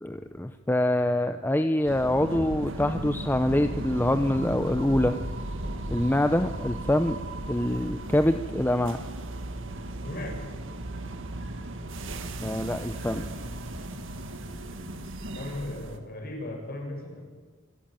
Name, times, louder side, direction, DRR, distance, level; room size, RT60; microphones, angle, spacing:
voice 1, 0.0-5.2 5.9-7.2 7.5-9.0 12.4-13.2, left 1 dB, 10° left, 8 dB, 0.6 m, -25 dB
sound 1, 1.8-16.0, right 1 dB, 60° right, 1.9 m, -36 dB
voice 2, 10.0-10.4 15.3-17.2, left 1 dB, 45° left, 1 dB, 6.9 m, -36 dB
26.5 x 14.0 x 9.1 m, 1.4 s
head